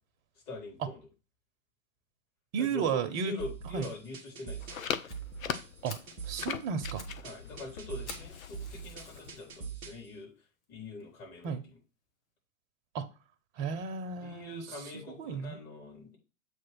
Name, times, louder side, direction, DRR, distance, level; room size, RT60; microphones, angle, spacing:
voice 1, 0.5-1.0 2.6-4.7 7.2-10.3 10.7-11.6 14.2-16.2, left 2 dB, 35° left, -3 dB, 4.1 m, -43 dB
voice 2, 2.5-3.3 3.7-3.9 5.8-6.0 6.3-7.0 11.4-11.6 12.9-13.1 13.6-14.6 15.2-15.6, right 6 dB, 35° right, 8 dB, 0.9 m, -33 dB
sound 1, 3.4-10.1, right 6 dB, 10° right, 0.3 m, -43 dB
sound 2, 4.6-9.7, left 8 dB, 75° left, 0.7 m, -41 dB
Fire, 5.1-5.2 5.6-5.7 5.9-6.2 6.7-7.2 7.5-7.6 8.1-9.4 10.0-10.1 10.6-10.7 11.0-11.1 11.4-11.5, left 4 dB, 55° left, 1.5 m, -48 dB
7.8 x 3.2 x 6.0 m, 0.32 s
hypercardioid pair, 120°, 41 cm